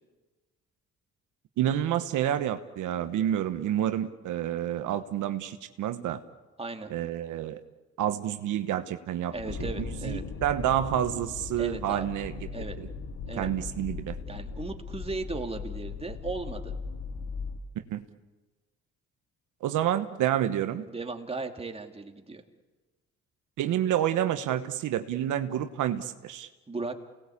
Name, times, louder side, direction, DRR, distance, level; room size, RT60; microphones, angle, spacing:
voice 1, 1.6-6.2 6.9-7.6 8.0-9.3 9.8-12.3 12.8-12.9 13.4-14.1 17.9-18.0 19.6-20.8 23.6-26.5, right 11 dB, 85° right, 9 dB, 1.1 m, -29 dB
voice 2, 6.6-6.9 9.3-10.2 11.6-12.1 12.5-12.8 13.3-13.5 14.3-16.7 20.9-22.4 26.7-27.1, right 3 dB, 20° right, 4 dB, 2.4 m, -36 dB
sound 1, 9.3-17.6, left 5 dB, 60° left, 2.2 m, -38 dB
28.5 x 19.0 x 8.5 m, 1.2 s
cardioid pair, 90°, 30 cm